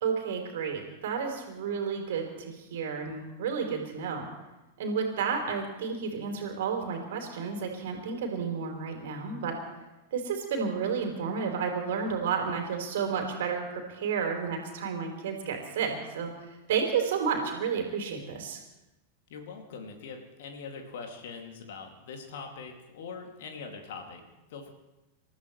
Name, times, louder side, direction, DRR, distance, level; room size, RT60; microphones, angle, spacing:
voice 1, 0.0-4.3 4.8-9.6 10.1-16.3 16.7-18.6, right 6 dB, 55° right, 3 dB, 3.5 m, -31 dB
voice 2, 19.3-24.7, left 5 dB, 55° left, 3 dB, 2.5 m, -42 dB
28.0 x 14.5 x 3.3 m, 1.0 s
figure-of-eight pair, 90°, 0 cm